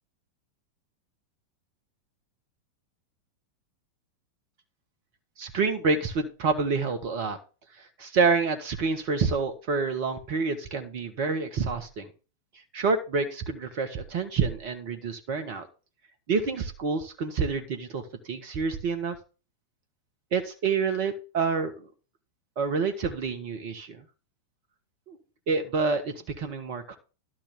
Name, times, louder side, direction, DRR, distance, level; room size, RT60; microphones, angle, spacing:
voice 1, 5.4-7.4 8.0-12.1 12.7-15.7 16.3-19.2 20.3-21.9 22.6-24.0 25.1-25.2 25.5-27.0, right 4 dB, 45° right, 8 dB, 1.5 m, -28 dB
12.0 x 4.7 x 6.0 m, 0.33 s
figure-of-eight pair, 90°, 0 cm